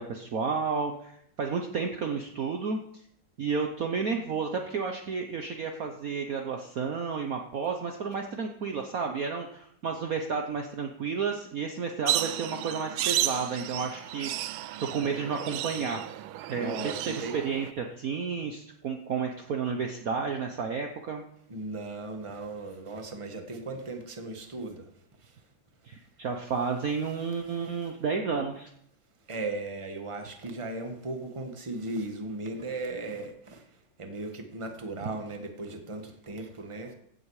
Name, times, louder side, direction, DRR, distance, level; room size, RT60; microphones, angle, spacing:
voice 1, 0.0-2.8 3.4-16.1 16.5-21.2 25.8-28.7, right 5 dB, 55° right, 3 dB, 1.2 m, -32 dB
sound 1, 12.1-17.7, right 13 dB, 90° right, 1.5 m, -33 dB
voice 2, 16.5-17.3 21.5-24.9 25.2-25.4 27.1-27.2 27.4-27.9 29.3-36.9, right 2 dB, 15° right, 5 dB, 1.3 m, -37 dB
16.0 x 8.1 x 4.9 m, 0.70 s
omnidirectional pair, 2.2 m